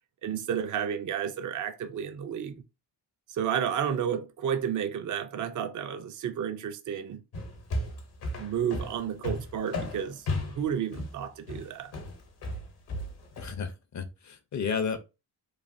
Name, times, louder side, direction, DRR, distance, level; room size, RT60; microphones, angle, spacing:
voice 1, 0.2-2.5 3.3-7.2 8.4-11.9, right 8 dB, 50° right, 0.5 m, -31 dB
sound 1, 7.3-13.5, left 1 dB, 65° left, 0.9 m, -35 dB
voice 2, 13.4-15.0, left 6 dB, 45° left, 0.6 m, -32 dB
3.2 x 2.1 x 2.5 m
cardioid pair, 85°, 41 cm